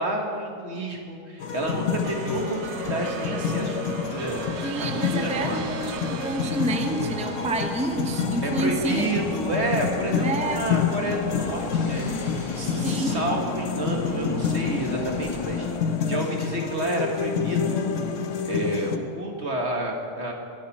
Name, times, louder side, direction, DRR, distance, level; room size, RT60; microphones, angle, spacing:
voice 1, 0.0-4.5 4.9-5.6 8.4-12.1 12.5-15.7 16.1-18.1 18.5-20.3, right 1 dB, 40° right, 1 dB, 1.9 m, -30 dB
sound 1, 1.4-19.0, left 7 dB, 55° left, 1.0 m, -29 dB
sound 2, 1.6-15.8, left 2 dB, 20° left, 1.5 m, -35 dB
sound 3, 2.0-8.3, right 10 dB, 85° right, 0.6 m, -40 dB
voice 2, 4.6-9.2 10.2-10.6 12.8-13.1, right 2 dB, 5° right, 4 dB, 0.7 m, -29 dB
22.5 x 11.5 x 4.2 m, 2.3 s
omnidirectional pair, 1.8 m